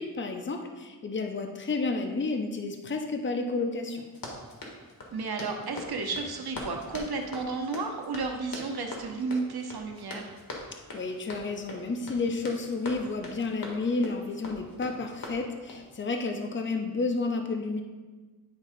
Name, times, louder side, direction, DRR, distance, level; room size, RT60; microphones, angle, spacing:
voice 1, 0.0-4.1 10.9-17.8, left 3 dB, 30° left, 4 dB, 0.7 m, -31 dB
Run, 4.1-15.9, left 2 dB, 70° left, 1.6 m, -42 dB
voice 2, 5.1-10.3, right 4 dB, 80° right, 3 dB, 1.0 m, -33 dB
10.5 x 3.7 x 5.0 m, 1.3 s
wide cardioid pair, 110°, 37 cm